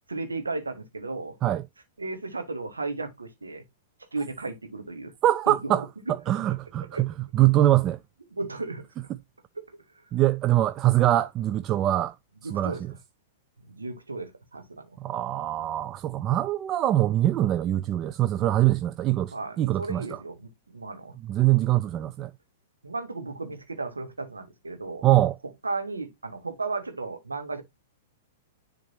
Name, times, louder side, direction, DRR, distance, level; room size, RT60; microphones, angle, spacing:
voice 1, 0.1-1.4 2.0-3.6 4.1-5.1 5.5-6.1 6.9-7.1 8.4-8.9 12.4-12.8 13.7-14.9 19.3-21.1 22.8-25.1 25.6-27.6, right 3 dB, 80° right, 1.6 m, -34 dB
voice 2, 5.2-8.0 10.1-12.1 12.5-12.8 15.0-20.0 21.3-22.3 25.0-25.4, right 14 dB, 30° right, 0.4 m, -23 dB
10.5 x 3.8 x 2.8 m
figure-of-eight pair, 105°, 0 cm